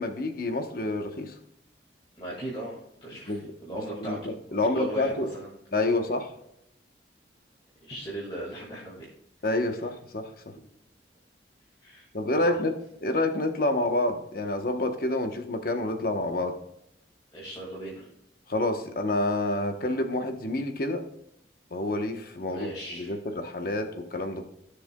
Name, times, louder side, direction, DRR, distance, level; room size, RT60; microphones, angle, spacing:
voice 1, 0.0-1.3 3.3-5.3 5.7-6.3 9.4-10.3 12.1-16.5 18.5-21.0 21.7-24.5, left 2 dB, 50° left, 6 dB, 1.0 m, -28 dB
voice 2, 2.2-5.5 7.8-9.1 11.8-12.6 17.3-18.1 22.5-23.1, right 1 dB, 30° left, -6 dB, 2.0 m, -38 dB
15.5 x 6.8 x 2.3 m, 0.78 s
head